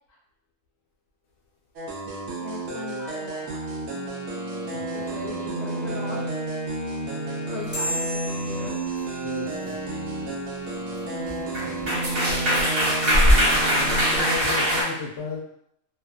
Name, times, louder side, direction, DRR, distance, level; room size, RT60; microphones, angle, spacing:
sound 1, 1.8-14.4, right 2 dB, 80° right, 1.0 m, -31 dB
voice 1, 2.4-3.7 4.9-6.3 7.5-8.8 9.9-10.0 11.0-14.1, left 3 dB, 40° left, -4 dB, 0.7 m, -41 dB
voice 2, 4.7-5.2 9.2-10.3 11.6-11.7 13.8-15.4, left 5 dB, 70° left, -3 dB, 0.8 m, -35 dB
sound 2, 7.7-10.6, equal, 5° right, 0.9 m, -35 dB
sound 3, 9.5-9.8 11.3-11.4 11.5-14.8, equal, 55° right, 1.0 m, -21 dB
2.6 x 2.2 x 2.3 m, 0.74 s
omnidirectional pair, 1.3 m